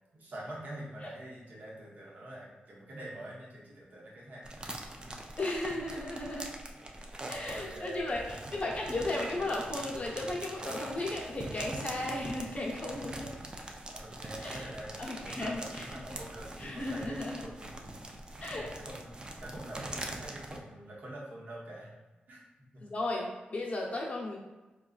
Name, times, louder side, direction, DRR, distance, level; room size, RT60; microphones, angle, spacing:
voice 1, 0.1-5.2 7.1-8.2 13.9-18.0 18.8-21.9 22.3-22.4 22.7-22.8, right 1 dB, 60° right, -5 dB, 1.0 m, -46 dB
sound 1, 4.4-20.6, right 1 dB, 25° right, 0.4 m, -43 dB
voice 2, 5.4-6.5 7.3-8.2 8.5-13.3 14.4-14.6 15.0-15.9 16.6-17.4 18.4-18.7 22.8-24.4, left 2 dB, 40° left, -3 dB, 0.8 m, -35 dB
3.8 x 2.3 x 2.4 m, 1.1 s
cardioid pair, 80°, 3 cm